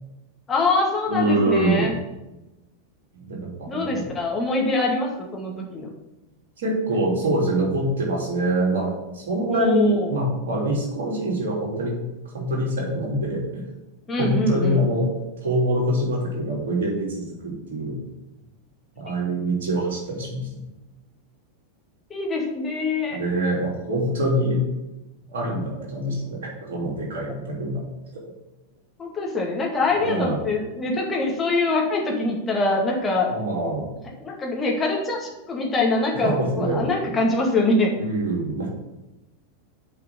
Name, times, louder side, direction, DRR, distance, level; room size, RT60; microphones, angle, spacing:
voice 1, 0.5-1.9 3.7-5.9 9.5-10.1 14.1-14.8 22.1-23.2 29.0-33.3 34.2-37.9, left 2 dB, 20° left, -1 dB, 2.0 m, -24 dB
voice 2, 1.1-1.9 3.2-4.0 6.6-11.9 12.3-13.4 14.2-15.1 15.4-17.9 19.0-20.6 23.1-24.6 25.3-27.8 28.1-28.2 30.0-30.4 33.3-33.9 36.2-36.8 38.0-38.7, right 1 dB, 55° right, -3 dB, 3.1 m, -24 dB
7.0 x 4.9 x 6.7 m, 0.99 s
figure-of-eight pair, 90°, 0 cm